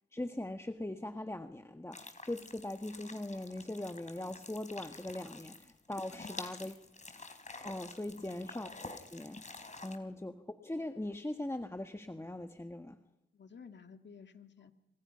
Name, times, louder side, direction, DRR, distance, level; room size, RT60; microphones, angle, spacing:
voice 1, 0.1-6.7 7.6-9.4 9.8-13.0, left 1 dB, 10° left, 1.6 m, -40 dB
sound 1, 1.9-10.0, left 3 dB, 35° left, 4.3 m, -49 dB
voice 2, 8.1-8.5 10.0-10.2 13.3-14.7, left 6 dB, 60° left, 2.4 m, -54 dB
29.0 x 26.5 x 5.8 m
supercardioid pair, 50°, 21 cm